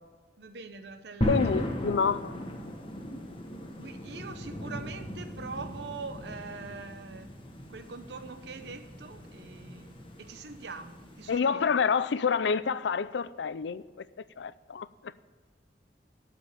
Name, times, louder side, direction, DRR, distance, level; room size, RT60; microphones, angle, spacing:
voice 1, 0.4-1.4 3.8-7.4 7.7-11.7, right 4 dB, 70° right, 9 dB, 0.7 m, -43 dB
sound 1, 1.2-11.4, equal, 30° left, 1.2 m, -37 dB
voice 2, 1.3-2.4 11.3-13.8 14.4-15.1, left 6 dB, 90° left, 16 dB, 0.4 m, -28 dB
12.0 x 5.1 x 8.6 m, 1.4 s
head